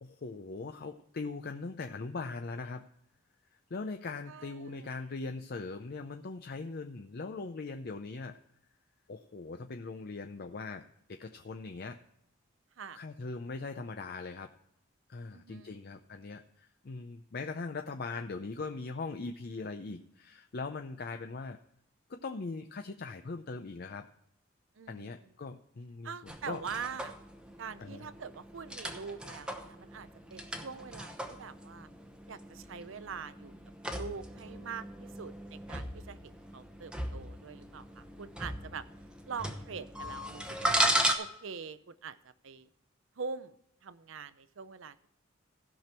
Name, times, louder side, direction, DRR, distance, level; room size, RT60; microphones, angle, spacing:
voice 1, 0.0-2.9 3.7-8.4 9.1-12.0 12.9-14.5 15.1-21.6 22.1-24.1 24.9-26.6 27.8-28.0, left 3 dB, 50° left, 6 dB, 0.5 m, -40 dB
voice 2, 15.3-15.8 24.8-25.1 26.0-27.1 27.6-31.9 32.3-33.5 33.9-38.8 39.3-40.8 41.2-42.2 42.4-42.7 43.2-43.5 43.8-44.9, right 5 dB, 65° right, 14 dB, 0.6 m, -43 dB
sound 1, 26.3-41.1, right 1 dB, 5° right, 0.9 m, -37 dB
16.0 x 6.0 x 4.4 m, 0.78 s
head